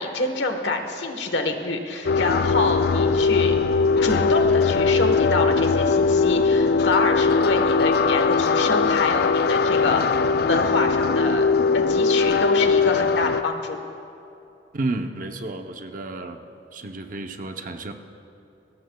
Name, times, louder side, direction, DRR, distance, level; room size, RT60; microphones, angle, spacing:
voice 1, 0.0-3.5 4.0-10.0 10.5-11.5 11.7-13.8, left 3 dB, 80° left, 5 dB, 1.3 m, -26 dB
sound 1, 2.1-13.4, left 4 dB, 60° left, 0.4 m, -20 dB
voice 2, 14.7-16.4 16.7-17.9, right 2 dB, 45° right, 5 dB, 0.8 m, -31 dB
22.0 x 18.0 x 2.3 m, 2.8 s
head